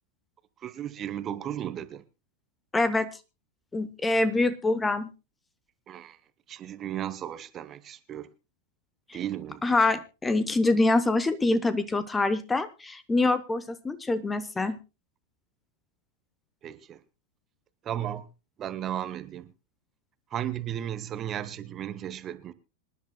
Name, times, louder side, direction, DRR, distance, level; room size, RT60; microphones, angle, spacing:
voice 1, 0.6-2.0 5.9-6.2 6.5-8.3 9.1-9.6 16.6-17.0 17.8-18.2 18.6-19.5 20.3-22.5, right 11 dB, 30° right, 1.0 m, -35 dB
voice 2, 2.7-3.1 3.7-5.1 9.6-14.8, left 2 dB, 10° left, 0.8 m, -25 dB
26.0 x 10.5 x 2.2 m
figure-of-eight pair, 90°, 0 cm